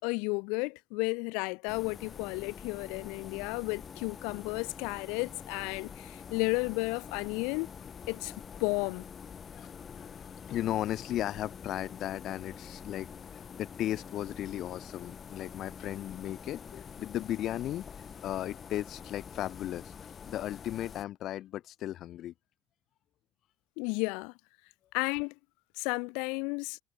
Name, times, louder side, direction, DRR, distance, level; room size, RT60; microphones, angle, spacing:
voice 1, 0.0-7.7 8.1-8.3 8.6-9.1 23.8-24.3 24.9-25.3 25.8-26.8, left 32 dB, 90° left, 1.1 m, -33 dB
sound 1, 1.7-21.0, left 7 dB, 25° left, 1.0 m, -46 dB
voice 2, 9.5-20.0 20.3-22.3, left 13 dB, 45° left, 1.8 m, -36 dB
cardioid pair, 160°, 0 cm